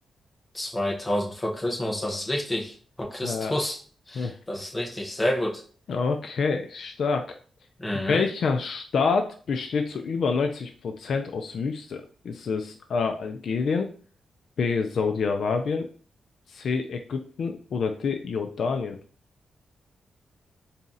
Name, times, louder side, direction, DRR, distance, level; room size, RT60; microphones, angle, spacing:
voice 1, 0.5-3.8 4.1-5.6 7.8-8.2, left 1 dB, 10° left, -1 dB, 0.8 m, -29 dB
voice 2, 3.2-3.5 4.2-4.3 5.9-7.3 8.1-13.9 14.6-15.9 16.5-19.0, left 5 dB, 60° left, 5 dB, 0.4 m, -27 dB
4.0 x 2.8 x 3.6 m, 0.40 s
wide cardioid pair, 165°, 0 cm